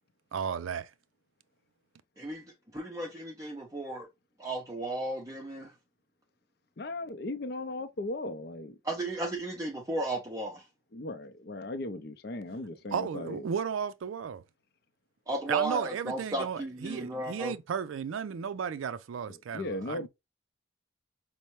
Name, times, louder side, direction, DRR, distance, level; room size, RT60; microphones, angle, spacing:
voice 1, 0.3-0.9 12.9-14.4 15.5-20.1, right 7 dB, 85° right, 0.4 m, -34 dB
voice 2, 2.2-4.1 4.4-5.7 8.8-10.7 15.3-17.5, right 2 dB, 15° right, 0.5 m, -34 dB
voice 3, 6.8-8.8 10.9-13.4 19.3-20.1, left 2 dB, 50° left, 0.5 m, -37 dB
5.4 x 2.1 x 3.0 m
head